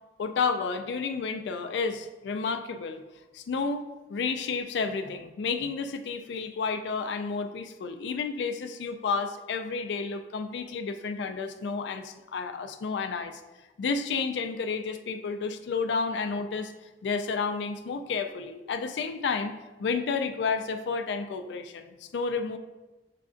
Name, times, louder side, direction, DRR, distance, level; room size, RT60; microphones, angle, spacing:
voice 1, 0.2-3.0 3.3-3.8 4.1-13.4 13.8-16.7 17.0-19.5 19.8-22.6, left 5 dB, 75° left, 8 dB, 0.3 m, -31 dB
7.3 x 2.5 x 2.4 m, 1.1 s
head